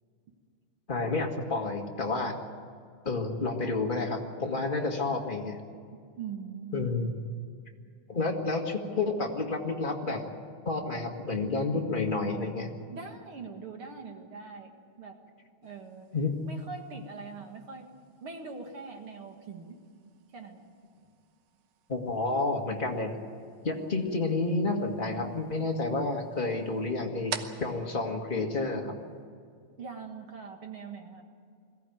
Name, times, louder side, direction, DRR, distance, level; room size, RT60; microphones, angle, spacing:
voice 1, 0.9-2.3 3.0-5.6 6.7-7.1 8.1-10.2 10.6-12.7 16.1-16.3 21.9-23.1 23.6-27.3 27.6-28.9, left 3 dB, 25° left, 1 dB, 1.2 m, -30 dB
voice 2, 5.9-7.2 12.9-15.2 15.6-16.1 16.4-17.9 18.2-19.8 20.3-20.7 29.8-31.2, right 5 dB, 50° right, 3 dB, 2.1 m, -42 dB
sound 1, 15.6-29.2, right 8 dB, 75° right, 2.5 m, -49 dB
22.0 x 15.5 x 9.2 m, 2.3 s
omnidirectional pair, 3.7 m